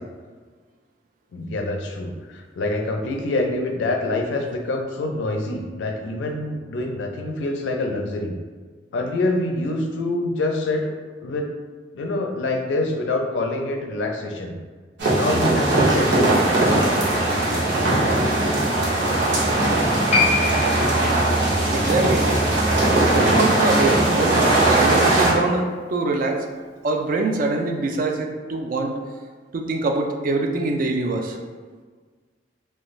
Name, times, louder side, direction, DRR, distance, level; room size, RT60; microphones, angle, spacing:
voice 1, 1.3-8.3 8.9-10.9 11.2-11.5 11.9-14.6 15.1-16.4, left 2 dB, 85° left, 2 dB, 0.4 m, -26 dB
sound 1, 15.0-25.3, right 2 dB, 75° right, 0.7 m, -19 dB
Piano, 20.1-27.1 27.3-27.4, left 3 dB, 35° left, 0.5 m, -29 dB
voice 2, 21.7-22.2 22.5-22.6 23.2-25.6 25.9-26.4 26.8-29.0 29.5-31.4, right 3 dB, 50° right, 3 dB, 0.3 m, -24 dB
2.5 x 2.2 x 3.0 m, 1.5 s
head